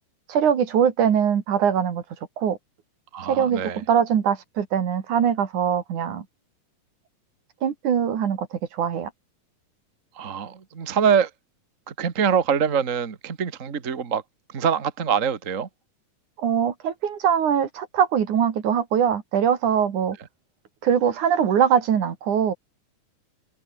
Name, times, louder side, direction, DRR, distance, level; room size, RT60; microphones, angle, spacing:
voice 1, 0.3-2.0 2.4-2.6 3.3-6.3 7.6-9.1 16.4-20.2 20.8-22.5, right 8 dB, 60° right, 3.6 m, -22 dB
voice 2, 3.1-3.8 10.1-11.3 11.9-14.2 14.5-15.7, right 7 dB, 40° right, 1.2 m, -24 dB
omnidirectional pair, 4.1 m